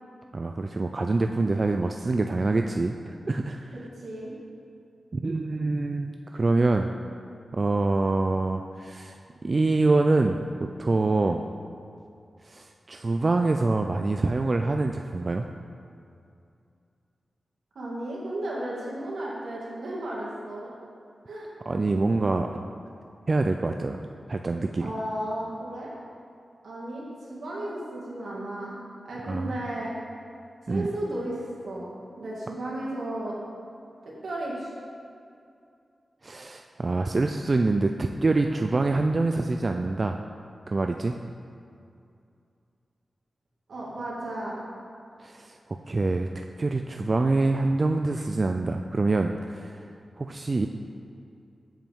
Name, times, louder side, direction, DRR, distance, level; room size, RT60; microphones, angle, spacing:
voice 1, 0.3-3.8 5.1-6.9 7.5-10.4 10.8-11.4 12.4-15.5 21.7-22.5 23.3-24.0 24.3-24.9 29.3-29.5 30.7-30.9 36.2-40.2 40.7-41.2 45.2-45.6 45.9-46.3 46.6-49.8 50.2-50.7, right 3 dB, 40° right, 4 dB, 0.3 m, -25 dB
voice 2, 3.7-4.3 17.8-20.7 21.3-21.5 24.8-25.9 26.6-28.7 29.0-29.9 30.7-33.3 34.0-34.7 43.7-44.6, right 1 dB, 80° right, -5 dB, 2.0 m, -34 dB
7.8 x 7.3 x 3.6 m, 2.5 s
wide cardioid pair, 75°, 0 cm